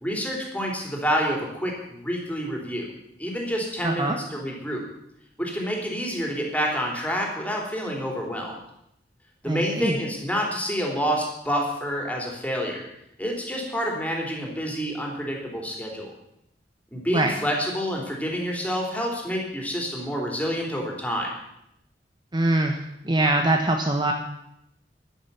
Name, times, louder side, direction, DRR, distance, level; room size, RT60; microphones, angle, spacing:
voice 1, 0.0-2.9 3.2-4.8 5.4-8.5 9.4-12.8 13.2-16.1 16.9-21.3, equal, 10° left, 0 dB, 3.3 m, -28 dB
voice 2, 3.8-4.2 9.5-10.0 17.1-17.3 22.3-24.1, right 2 dB, 25° right, 3 dB, 1.0 m, -23 dB
11.5 x 11.0 x 6.9 m, 0.80 s
head